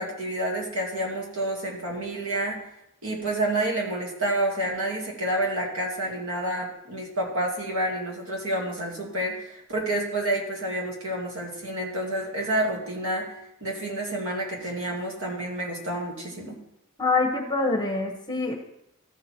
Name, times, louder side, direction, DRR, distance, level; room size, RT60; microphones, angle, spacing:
voice 1, 0.0-2.6 3.0-13.3 13.6-16.6, right 1 dB, 70° right, -2 dB, 2.5 m, -29 dB
voice 2, 17.0-18.5, left 3 dB, 20° left, 2 dB, 1.2 m, -25 dB
14.0 x 4.8 x 4.4 m, 0.79 s
head